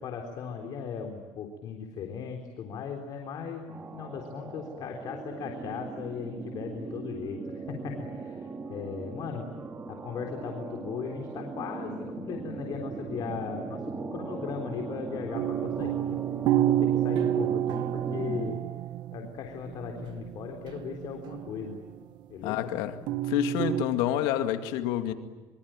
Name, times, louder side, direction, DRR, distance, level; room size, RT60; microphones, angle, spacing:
voice 1, 0.0-9.5 9.9-16.2 16.5-18.6 19.1-21.8 22.3-22.7, left 6 dB, 55° left, 3.8 m, -37 dB
sound 1, 3.7-18.5, right 4 dB, 25° right, 2.0 m, -39 dB
sound 2, 15.3-19.4 19.7-21.9 23.1-23.8, right 13 dB, 65° right, 1.1 m, -29 dB
voice 2, 22.4-23.0 23.3-25.1, left 12 dB, 85° left, 2.3 m, -28 dB
26.5 x 24.5 x 9.1 m
cardioid pair, 120°, 8 cm